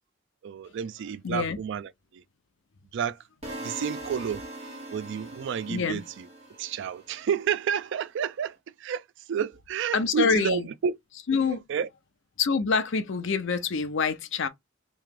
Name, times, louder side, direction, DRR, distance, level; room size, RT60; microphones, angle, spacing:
voice 1, 0.4-2.2 2.9-3.2 3.6-4.4 4.9-6.2 6.6-11.0 11.3-11.9, right 7 dB, 65° right, 0.3 m, -30 dB
voice 2, 1.2-1.6 5.7-6.0 9.9-10.6 11.3-11.6 12.4-14.5, left 5 dB, 65° left, 0.6 m, -26 dB
sound 1, 3.4-7.5, right 1 dB, 35° right, 1.7 m, -41 dB
3.1 x 2.9 x 3.6 m
head